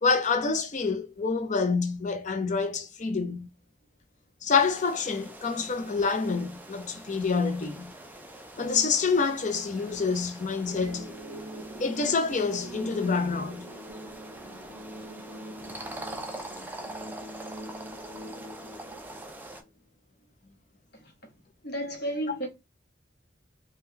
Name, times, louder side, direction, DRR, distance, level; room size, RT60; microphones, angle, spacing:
voice 1, 0.0-3.5 4.4-7.9 8.6-11.1 11.8-13.7, left 4 dB, 40° left, 0.6 m, -27 dB
sound 1, 4.5-19.6, right 1 dB, 10° right, 0.4 m, -44 dB
sound 2, 10.7-19.7, right 1 dB, 70° right, 0.9 m, -44 dB
voice 2, 20.9-21.3 21.6-22.5, right 1 dB, 60° left, 0.9 m, -33 dB
3.6 x 2.3 x 2.7 m
head